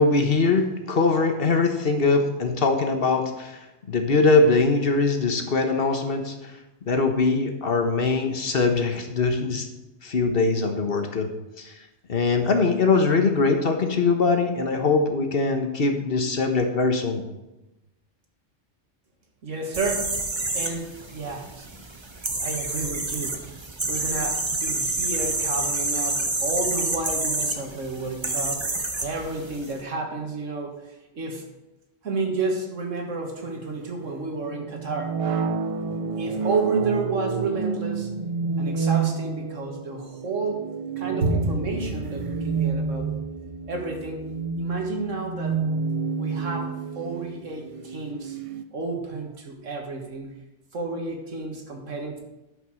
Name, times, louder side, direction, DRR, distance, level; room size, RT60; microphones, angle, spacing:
voice 1, 0.0-3.6 3.9-6.3 6.9-9.7 10.0-11.3 11.6-11.7 12.1-17.2, left 3 dB, 50° left, 5 dB, 1.3 m, -22 dB
voice 2, 19.4-21.7 22.4-23.4 23.9-28.7 29.0-30.8 31.1-31.5 32.0-35.2 36.2-38.1 38.6-40.7 41.0-43.1 43.7-44.3 44.6-45.6 46.2-48.4 48.7-50.4 50.7-52.2, right 3 dB, 90° right, 3 dB, 2.0 m, -31 dB
sound 1, 19.7-29.7, right 2 dB, 25° right, 0.9 m, -28 dB
sound 2, 33.3-48.6, right 5 dB, 55° right, 0.3 m, -29 dB
11.5 x 5.7 x 6.2 m, 0.99 s
omnidirectional pair, 1.3 m